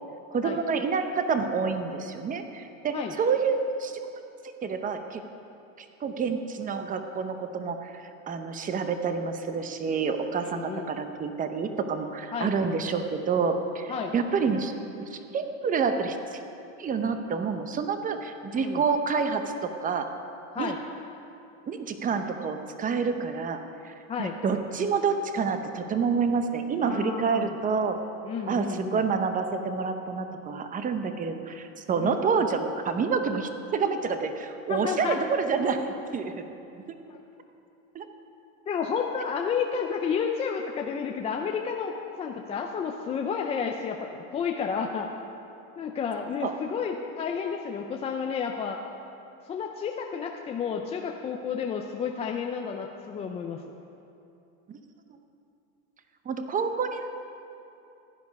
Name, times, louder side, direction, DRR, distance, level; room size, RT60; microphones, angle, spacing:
voice 1, 0.3-4.0 4.6-5.2 6.0-7.9 8.3-16.4 16.8-20.1 20.6-20.7 21.7-23.6 23.8-28.0 28.5-35.8 36.1-36.4 36.7-36.8 37.9-38.1 46.4-46.5 54.7-54.8 56.3-57.1, right 5 dB, 20° right, 7 dB, 0.8 m, -28 dB
voice 2, 10.4-10.9 12.3-12.5 13.9-14.1 18.5-18.8 20.5-20.8 24.1-24.4 26.8-27.5 28.2-29.1 32.0-32.2 34.7-35.2 37.1-37.2 38.7-41.9 42.2-45.1 45.8-48.8 49.4-53.6, left 6 dB, 15° left, 2 dB, 0.4 m, -31 dB
15.5 x 10.5 x 5.2 m, 2.8 s
supercardioid pair, 140°, 40 cm